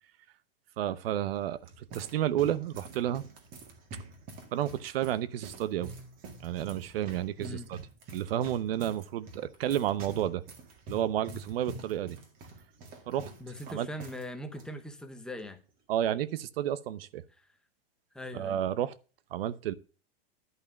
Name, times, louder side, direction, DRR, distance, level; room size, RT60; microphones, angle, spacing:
voice 1, 0.8-3.2 4.5-5.9 6.4-7.8 8.1-10.4 10.9-12.2 13.1-13.3 13.7-13.9 15.9-17.2 18.3-18.9 19.3-19.7, right 11 dB, 65° right, 0.9 m, -31 dB
sound 1, 1.4-14.3 14.5-14.7 15.4-15.7, right 3 dB, 25° right, 2.0 m, -47 dB
voice 2, 13.4-15.6 17.4-17.5 18.1-18.6, left 1 dB, ahead, 0.7 m, -41 dB
11.0 x 5.6 x 7.0 m
supercardioid pair, 165°, 32 cm